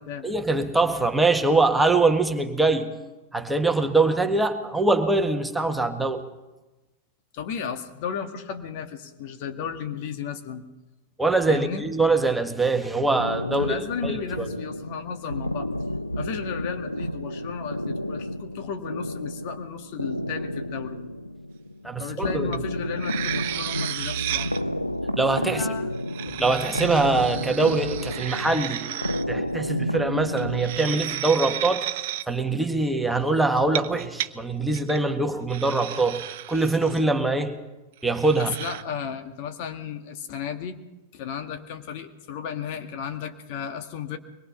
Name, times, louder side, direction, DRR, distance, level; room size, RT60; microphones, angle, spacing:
voice 1, 0.2-3.0 3.3-6.2 11.2-14.5 21.8-22.6 25.2-25.7 26.4-29.0 29.3-31.9 32.3-37.6 38.0-38.5, right 3 dB, 5° right, 1.8 m, -23 dB
voice 2, 7.3-10.6 11.5-11.8 13.6-15.7 16.2-21.0 22.0-24.5 25.5-25.9 38.4-40.8 41.1-44.2, left 7 dB, 45° left, 1.9 m, -34 dB
sound 1, 13.2-31.3, left 1 dB, 90° left, 0.8 m, -31 dB
sound 2, 22.5-22.6 22.9-24.6 25.9-29.2 30.4-32.2 33.6-34.3 34.7-35.0 35.5-37.0 38.1-38.8, right 12 dB, 50° right, 0.9 m, -33 dB
24.0 x 22.0 x 5.8 m
figure-of-eight pair, 90°, 0 cm